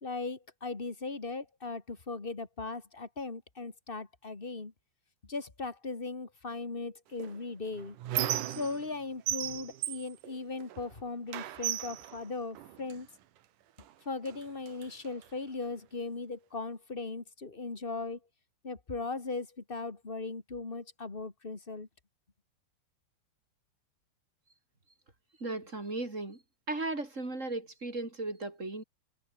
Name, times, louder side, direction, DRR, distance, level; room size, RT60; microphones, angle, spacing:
voice 1, 0.0-4.7 5.3-8.0 8.5-13.1 14.0-18.2 18.6-21.9, left 3 dB, 40° left, 0.8 m, -38 dB
Squeak, 7.2-9.0 9.3-10.9 11.3-13.0 13.8-13.9 14.3-15.3, right 12 dB, 65° right, 2.3 m, -36 dB
voice 2, 25.4-26.4 26.7-28.8, right 2 dB, 15° right, 4.7 m, -36 dB
omnidirectional pair, 5.1 m